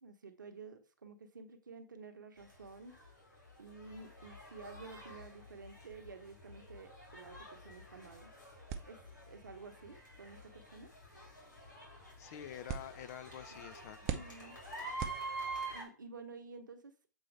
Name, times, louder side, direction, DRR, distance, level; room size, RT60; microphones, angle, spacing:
voice 1, 0.0-2.9 3.6-8.3 8.9-10.9 13.5-13.7 14.1-14.6 15.7-16.9, right 4 dB, 80° right, 7 dB, 0.9 m, -52 dB
sound 1, 2.4-15.8, right 2 dB, 85° left, 3.5 m, -48 dB
sound 2, 8.7-15.8, right 9 dB, 35° right, 0.7 m, -47 dB
voice 2, 12.2-14.3, left 10 dB, 50° left, 12 dB, 0.7 m, -48 dB
7.2 x 4.2 x 3.3 m, 0.37 s
figure-of-eight pair, 105°, 10 cm